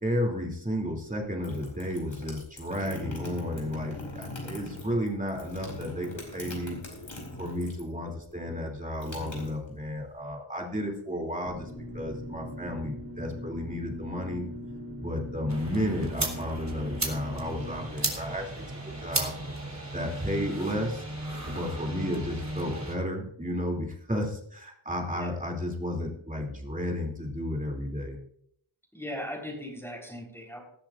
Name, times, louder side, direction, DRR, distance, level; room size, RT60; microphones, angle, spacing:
voice 1, 0.0-6.8 7.4-14.5 15.0-18.5 19.0-19.3 19.9-21.0 21.5-28.2, equal, 15° right, 0 dB, 2.9 m, -32 dB
sound 1, 1.4-8.0 8.2-10.1, left 2 dB, 75° left, 5.3 m, -41 dB
Electrical Hum.L, 11.5-17.8, equal, 25° left, 3.4 m, -40 dB
sound 2, 15.5-22.9, right 2 dB, 35° right, 3.6 m, -35 dB
voice 2, 28.9-30.6, left 1 dB, 5° left, -2 dB, 4.1 m, -38 dB
19.0 x 13.0 x 2.6 m, 0.67 s
wide cardioid pair, 60°, 48 cm